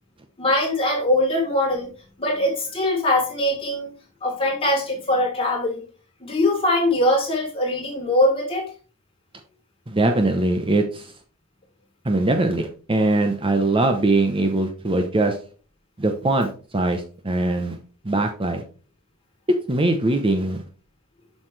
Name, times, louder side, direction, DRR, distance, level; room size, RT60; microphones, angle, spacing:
voice 1, 0.4-1.9 2.2-3.9 4.2-5.8 6.2-8.7, left 1 dB, 25° left, -3 dB, 3.4 m, -22 dB
voice 2, 9.9-11.1 12.0-15.4 16.0-17.8 18.0-18.6 19.7-20.6, right 2 dB, 25° right, 5 dB, 0.8 m, -21 dB
7.5 x 6.4 x 3.2 m, 0.39 s
head